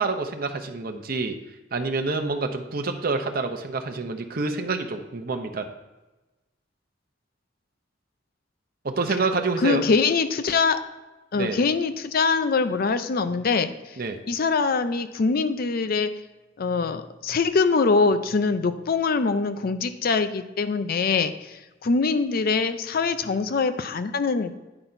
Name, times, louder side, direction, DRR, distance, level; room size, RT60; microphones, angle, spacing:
voice 1, 0.0-1.4 1.7-5.7 8.8-9.8 11.4-11.6 14.0-14.2, right 3 dB, 55° right, 6 dB, 0.7 m, -27 dB
voice 2, 9.6-10.8 11.3-13.7 14.3-16.1 16.6-24.5, left 4 dB, 55° left, 11 dB, 0.5 m, -23 dB
9.8 x 4.1 x 4.4 m, 1.1 s
head